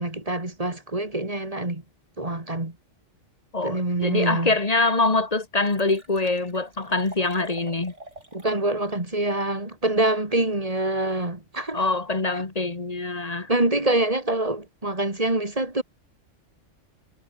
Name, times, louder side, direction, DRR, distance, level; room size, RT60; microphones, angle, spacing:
voice 1, 0.0-1.8 2.2-2.7 3.6-4.5 8.3-11.8 13.5-15.8, right 2 dB, 30° right, 2.9 m, -25 dB
voice 2, 3.5-7.9 11.7-13.5, left 3 dB, 30° left, 1.9 m, -24 dB
Liquid, 5.0-5.1 5.3-8.6 8.9-9.0, right 1 dB, 70° right, 8.1 m, -46 dB
omnidirectional pair, 1.3 m